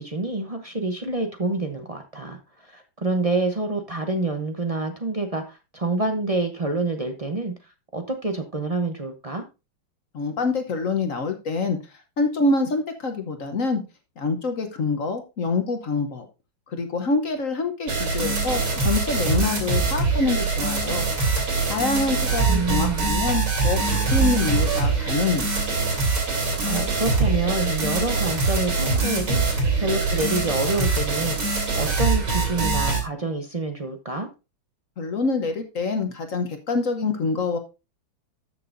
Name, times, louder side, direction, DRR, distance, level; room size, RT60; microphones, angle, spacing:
voice 1, 0.0-7.5 7.9-9.4 22.5-23.1 26.2-34.3, right 2 dB, 50° right, 6 dB, 0.4 m, -27 dB
voice 2, 10.1-11.8 12.2-13.8 14.2-16.3 16.7-21.1 21.7-25.6 35.0-37.6, left 3 dB, 50° left, 6 dB, 1.1 m, -26 dB
sound 1, 17.9-33.0, right 4 dB, 90° right, 3.8 m, -23 dB
13.5 x 6.7 x 2.6 m, 0.28 s
omnidirectional pair, 2.1 m